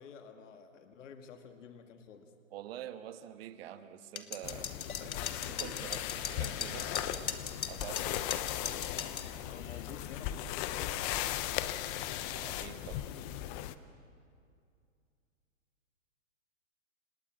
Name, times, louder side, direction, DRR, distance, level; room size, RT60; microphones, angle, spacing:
voice 1, 0.0-2.3 5.0-5.3 9.5-11.2, left 6 dB, 60° left, 6 dB, 2.2 m, -51 dB
voice 2, 2.5-4.7 5.5-7.4 7.7-8.3 12.3-13.1, right 11 dB, 45° right, 10 dB, 1.5 m, -46 dB
sound 1, 4.2-9.3, left 7 dB, 85° left, 2.2 m, -38 dB
sound 2, 4.4-13.7, left 13 dB, 20° left, 0.6 m, -37 dB
sound 3, 6.1-13.2, right 5 dB, 25° right, 3.6 m, -58 dB
29.0 x 18.5 x 8.9 m, 2.4 s
hypercardioid pair, 140°, 41 cm